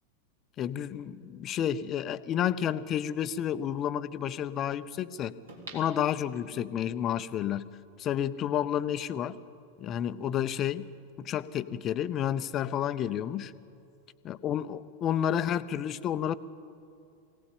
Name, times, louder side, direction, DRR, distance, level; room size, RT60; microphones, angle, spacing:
voice 1, 0.6-5.4 5.7-7.7 8.0-9.4 9.8-10.9 11.2-13.5 14.2-16.4, left 10 dB, 30° left, 14 dB, 0.7 m, -30 dB
sound 1, 5.5-6.8 7.3-7.4, right 3 dB, 70° right, 3.9 m, -47 dB
22.5 x 17.5 x 8.7 m, 2.5 s
figure-of-eight pair, 90°, 0 cm